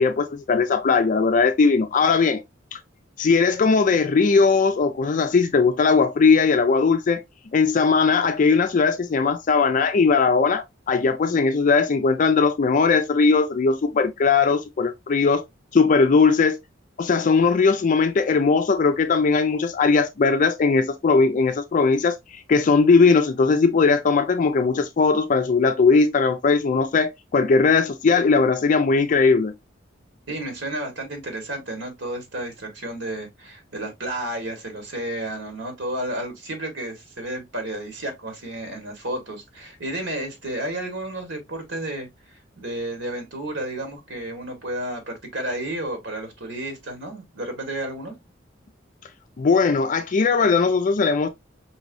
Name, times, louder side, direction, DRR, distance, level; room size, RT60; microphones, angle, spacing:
voice 1, 0.0-2.4 2.7-2.8 3.2-7.2 7.5-15.4 15.7-16.6 17.0-29.5 49.4-51.3, left 4 dB, 45° left, 0.4 m, -19 dB
voice 2, 30.3-42.1 42.6-48.1, right 1 dB, 80° right, 1.5 m, -32 dB
5.3 x 3.0 x 2.5 m
head